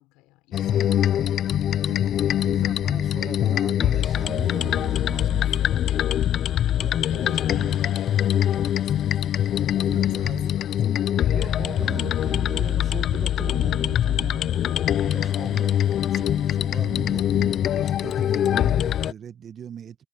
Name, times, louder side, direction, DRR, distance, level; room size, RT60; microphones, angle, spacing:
voice 1, 0.0-2.5 3.1-3.5 5.2-9.5 9.9-11.2, left 20 dB, 70° left, 5.0 m, -49 dB
sound 1, 0.5-19.1, left 11 dB, 45° left, 0.6 m, -23 dB
voice 2, 2.4-5.6 6.8-7.7 9.9-10.5 11.3-20.0, right 8 dB, 40° right, 1.5 m, -39 dB
supercardioid pair, 105°, 0 cm